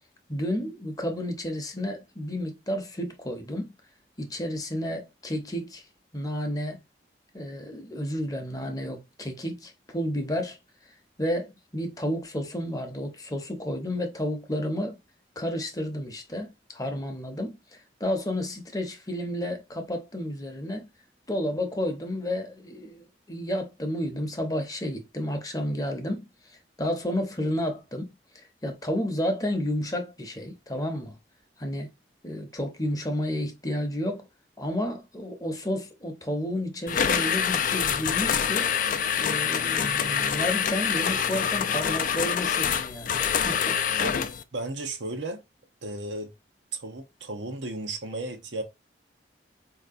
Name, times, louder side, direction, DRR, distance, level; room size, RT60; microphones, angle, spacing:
voice 1, 0.3-3.8 4.2-5.8 6.1-6.8 7.3-10.6 11.2-15.0 15.4-17.6 18.0-20.9 21.3-26.3 26.8-28.2 28.6-31.2 31.6-31.9 32.2-34.3 34.6-38.7 39.2-43.8, left 1 dB, 20° left, 0.8 m, -31 dB
sound 1, 36.9-44.4, left 8 dB, 45° left, 0.3 m, -26 dB
voice 2, 44.5-45.4 45.8-46.3 46.7-48.6, right 2 dB, 90° right, 0.8 m, -34 dB
4.4 x 2.8 x 2.5 m
head